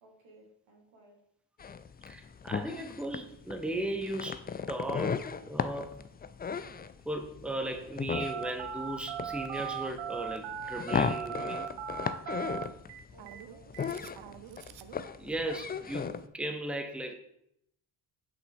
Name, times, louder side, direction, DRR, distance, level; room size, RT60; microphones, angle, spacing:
voice 1, 0.0-1.2 12.7-14.2, equal, 80° right, -2 dB, 2.1 m, -57 dB
sound 1, 1.6-16.3, left 6 dB, 20° left, 0.4 m, -36 dB
voice 2, 2.1-6.0 7.1-11.7 15.2-17.1, right 1 dB, ahead, 4 dB, 1.0 m, -37 dB
Telephone, 8.1-15.0, right 9 dB, 65° right, 0.7 m, -39 dB
6.2 x 5.8 x 3.6 m, 0.74 s
hypercardioid pair, 45°, 48 cm